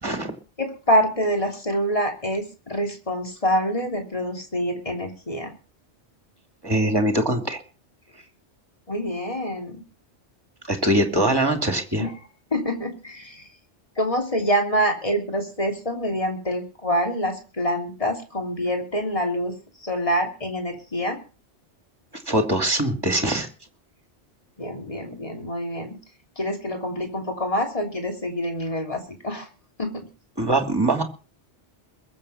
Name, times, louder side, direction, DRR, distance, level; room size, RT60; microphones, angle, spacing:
voice 1, 0.0-0.3 6.6-7.6 10.7-12.1 22.3-23.5 30.4-31.0, right 1 dB, 20° right, 5 dB, 2.6 m, -22 dB
voice 2, 0.6-5.5 8.9-9.8 12.0-12.2 12.5-13.4 14.0-19.5 19.8-21.2 24.6-26.0 26.4-29.5 29.8-30.0, equal, 30° left, 2 dB, 3.2 m, -26 dB
22.0 x 7.6 x 5.7 m, 0.35 s
omnidirectional pair, 1.1 m